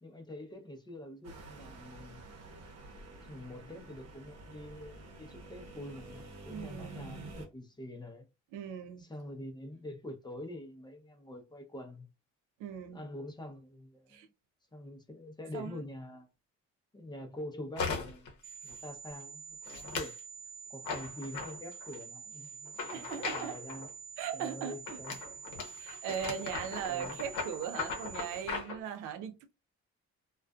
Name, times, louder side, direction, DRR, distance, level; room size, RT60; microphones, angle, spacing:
voice 1, 0.0-2.2 3.2-8.3 9.0-12.1 12.9-14.3 14.7-16.3 16.9-18.3 18.6-20.2 20.7-23.9 24.3-25.5 26.9-27.2 28.4-28.5, left 1 dB, 15° left, 0.6 m, -46 dB
sound 1, 1.2-7.5, right 2 dB, 60° right, 0.9 m, -49 dB
voice 2, 6.5-7.0 8.5-9.0 12.6-13.0 14.1-14.3 15.5-15.8 22.9-23.6 24.2-25.0 25.8-29.4, right 8 dB, 90° right, 0.5 m, -39 dB
sound 2, 17.8-18.3 18.7-19.1 19.7-20.2 20.8-22.0 22.7-23.9 24.9-28.8, left 4 dB, 80° left, 0.8 m, -39 dB
sound 3, 18.4-28.4, right 6 dB, 20° right, 0.8 m, -48 dB
2.4 x 2.3 x 2.2 m
cardioid pair, 90°, 30 cm